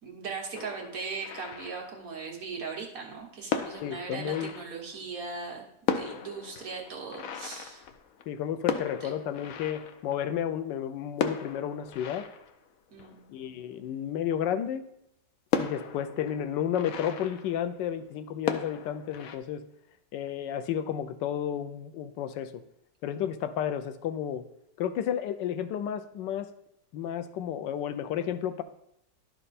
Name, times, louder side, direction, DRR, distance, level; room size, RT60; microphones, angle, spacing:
voice 1, 0.0-7.9 9.0-9.2 12.9-13.2, right 4 dB, 55° right, 0 dB, 1.7 m, -39 dB
sound 1, 0.5-2.4 3.1-3.2 3.5-5.2 5.5-5.6 5.8-10.6 11.1-13.8 14.3-14.4 14.8-14.9 15.5-18.1 18.4-19.4, left 7 dB, 65° left, 0.9 m, -36 dB
voice 2, 3.8-4.5 8.3-12.3 13.3-14.8 15.6-19.6 20.1-22.5 23.0-24.4 24.8-26.5 26.9-28.6, left 9 dB, 90° left, 10 dB, 1.3 m, -32 dB
11.5 x 4.4 x 4.1 m, 0.77 s
omnidirectional pair, 1.9 m